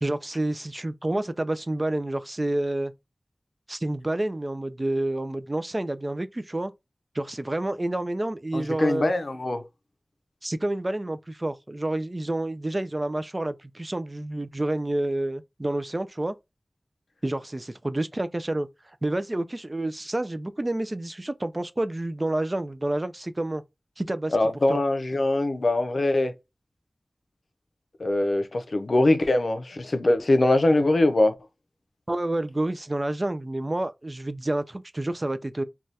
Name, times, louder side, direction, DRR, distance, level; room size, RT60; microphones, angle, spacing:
voice 1, 0.0-2.9 3.7-6.7 7.1-9.1 10.4-16.3 17.2-18.7 19.0-23.6 24.0-24.4 24.7-24.8 32.1-35.6, right 1 dB, 35° right, 0.3 m, -29 dB
voice 2, 8.5-9.7 24.3-26.3 28.0-31.3, left 2 dB, 65° left, 0.5 m, -22 dB
2.7 x 2.3 x 3.1 m
wide cardioid pair, 60°, 0 cm